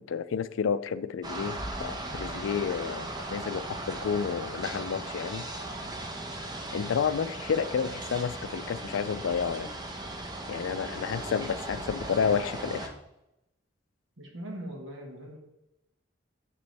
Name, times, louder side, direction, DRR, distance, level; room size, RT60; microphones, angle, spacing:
voice 1, 0.0-5.5 6.7-9.7 10.5-12.9, left 6 dB, 85° left, 15 dB, 0.4 m, -30 dB
sound 1, 1.2-12.9, right 2 dB, 20° right, 0.9 m, -37 dB
voice 2, 14.2-15.4, right 1 dB, 80° right, 1 dB, 1.7 m, -40 dB
6.8 x 6.8 x 3.4 m, 0.88 s
head